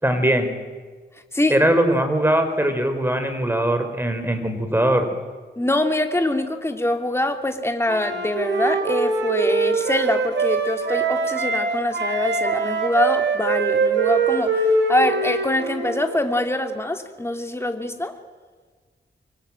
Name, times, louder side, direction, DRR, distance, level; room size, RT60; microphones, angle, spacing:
voice 1, 0.0-0.5 1.5-5.1, right 1 dB, 10° right, 8 dB, 4.7 m, -20 dB
voice 2, 1.3-1.7 5.6-18.2, left 1 dB, 15° left, 5 dB, 2.9 m, -24 dB
Wind instrument woodwind instrument, 7.8-11.7 11.9-16.0, right 4 dB, 75° right, 6.3 m, -23 dB
25.0 x 24.5 x 9.1 m, 1.5 s
wide cardioid pair, 90°, 19 cm